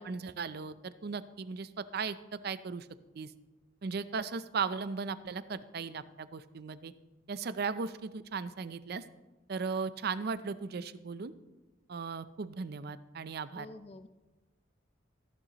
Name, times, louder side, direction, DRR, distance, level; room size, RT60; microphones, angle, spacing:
voice 1, 0.0-2.9 3.1-3.3 3.8-6.9 7.3-9.0 9.5-11.3 11.9-13.7, right 5 dB, 55° right, 15 dB, 0.5 m, -37 dB
voice 2, 13.5-14.1, left 2 dB, 35° left, 11 dB, 0.4 m, -49 dB
14.5 x 11.0 x 2.9 m, 1.1 s
head